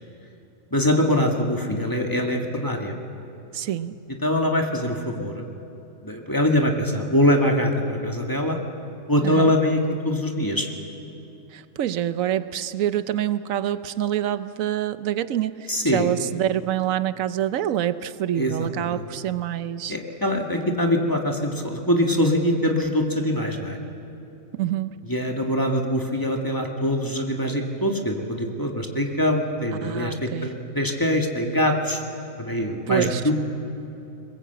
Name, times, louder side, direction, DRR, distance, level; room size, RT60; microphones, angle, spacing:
voice 1, 0.7-2.9 4.2-5.5 6.0-8.6 9.1-10.7 15.7-16.1 18.4-19.0 19.9-23.8 25.1-32.0 32.4-33.4, left 1 dB, 15° left, 2 dB, 1.7 m, -23 dB
voice 2, 3.5-4.0 9.2-9.5 11.5-20.0 24.6-25.0 29.8-30.6 32.9-33.2, right 11 dB, 90° right, 13 dB, 1.1 m, -26 dB
22.0 x 20.0 x 8.0 m, 2.9 s
omnidirectional pair, 1.4 m